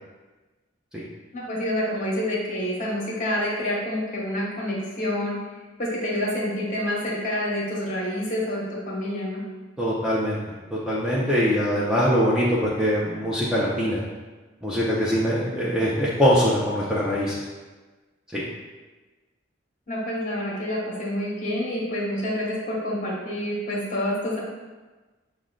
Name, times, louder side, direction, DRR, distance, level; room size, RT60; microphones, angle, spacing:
voice 1, 1.3-5.4 5.8-9.4 19.9-24.4, left 1 dB, 40° left, -4 dB, 1.0 m, -28 dB
voice 2, 9.8-10.4 10.7-14.0 14.6-17.3 18.3-18.4, equal, 5° right, -7 dB, 0.4 m, -22 dB
6.1 x 2.1 x 3.7 m, 1.3 s
head